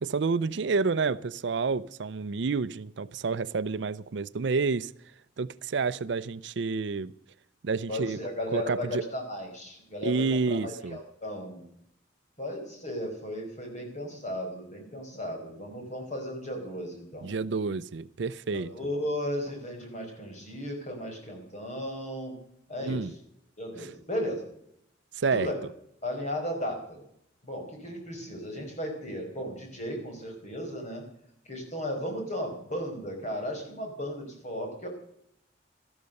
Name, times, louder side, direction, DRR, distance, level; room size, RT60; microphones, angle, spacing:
voice 1, 0.0-4.9 5.4-7.1 7.6-8.2 8.5-9.0 10.0-11.0 17.2-18.7 22.8-23.1 25.1-25.5, right 4 dB, 60° right, 0.5 m, -29 dB
voice 2, 7.9-11.7 12.4-17.3 18.5-22.3 22.7-23.1 23.6-24.4 25.3-25.6 26.0-27.0 27.4-31.0 31.4-34.9, equal, 35° left, 4.9 m, -35 dB
13.0 x 12.5 x 6.4 m
head